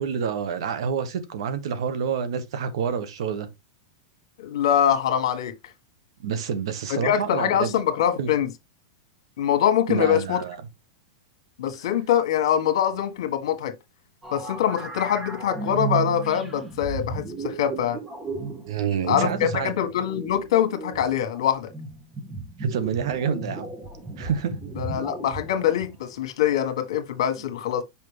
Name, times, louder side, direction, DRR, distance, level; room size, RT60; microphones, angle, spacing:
voice 1, 0.0-3.5 6.2-7.7 8.2-8.3 9.9-10.6 18.7-19.7 22.6-23.7 24.2-24.6, right 7 dB, 70° right, 1.4 m, -28 dB
voice 2, 4.4-5.5 6.9-8.5 9.4-10.4 11.6-13.7 14.3-18.0 19.1-21.7 24.8-27.8, left 10 dB, 70° left, 1.3 m, -24 dB
sound 1, 14.2-26.1, right 3 dB, 10° right, 1.3 m, -34 dB
5.8 x 5.2 x 3.3 m
supercardioid pair, 140°, 3 cm